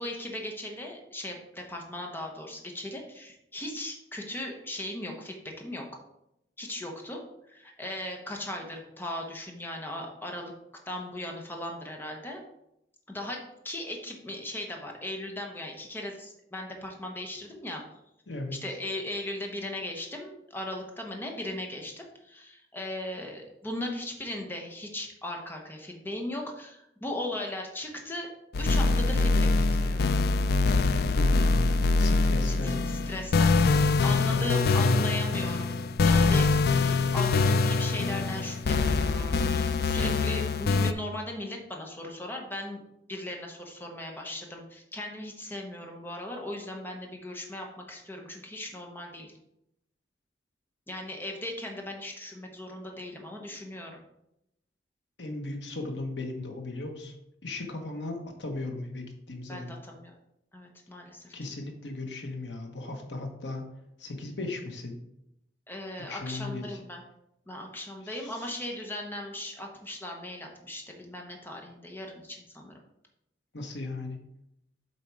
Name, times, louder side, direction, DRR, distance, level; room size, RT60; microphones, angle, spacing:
voice 1, 0.0-5.9 6.6-10.5 10.9-12.4 13.1-17.8 18.6-28.3 28.6-30.1 32.5-32.8 33.1-42.8 43.1-49.3 50.9-54.0 59.5-60.1 60.5-61.3 65.7-67.0 67.5-72.7, left 1 dB, 10° left, 1 dB, 0.9 m, -38 dB
voice 2, 18.3-18.6 31.1-31.7 32.0-32.8 34.3-35.0 55.2-57.1 57.4-59.7 61.3-63.7 64.0-65.0 66.1-66.6 68.1-68.6 73.5-74.2, left 2 dB, 80° left, 3 dB, 1.2 m, -36 dB
sound 1, 28.5-40.9, left 3 dB, 60° left, 0.4 m, -24 dB
7.6 x 4.3 x 4.7 m, 0.83 s
head